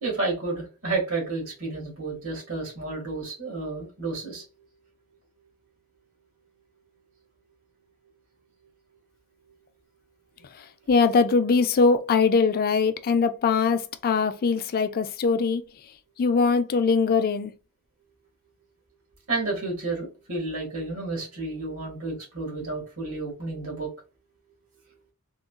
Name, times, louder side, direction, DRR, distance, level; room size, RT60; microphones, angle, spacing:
voice 1, 0.0-4.4 19.3-23.9, right 3 dB, 75° right, 1.6 m, -31 dB
voice 2, 10.6-15.6 16.2-17.5, left 4 dB, 45° left, 0.4 m, -22 dB
3.7 x 2.3 x 2.3 m
head